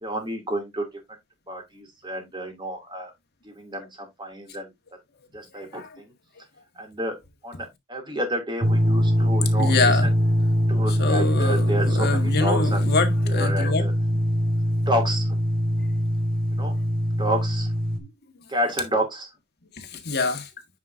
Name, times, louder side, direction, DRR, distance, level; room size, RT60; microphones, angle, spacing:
voice 1, 0.0-0.9 1.5-3.1 3.4-4.7 5.3-6.0 6.8-7.2 7.4-9.7 10.7-12.8 13.3-13.9 14.9-15.3 16.5-16.7 17.2-17.7 18.5-19.3, equal, 25° right, 2.9 m, -30 dB
voice 2, 5.6-6.0 9.5-10.1 10.9-13.9 15.8-15.9 19.8-20.5, left 3 dB, 50° left, 1.7 m, -26 dB
sound 1, 8.6-18.0, equal, 45° right, 1.4 m, -22 dB
9.2 x 5.0 x 2.7 m
head